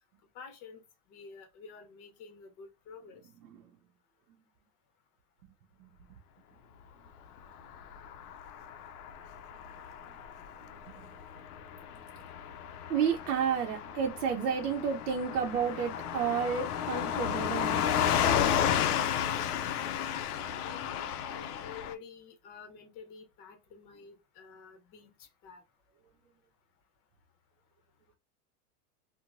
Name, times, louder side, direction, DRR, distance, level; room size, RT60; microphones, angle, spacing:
voice 1, 0.3-0.8 1.1-3.2 16.9-17.0 20.6-25.6, left 7 dB, 40° left, 1.0 m, -49 dB
Car passing by / Truck, 7.6-21.9, left 9 dB, 75° left, 0.6 m, -33 dB
voice 2, 12.9-17.8, right 7 dB, 80° right, 0.7 m, -31 dB
2.8 x 2.1 x 2.6 m
hypercardioid pair, 125°, 46 cm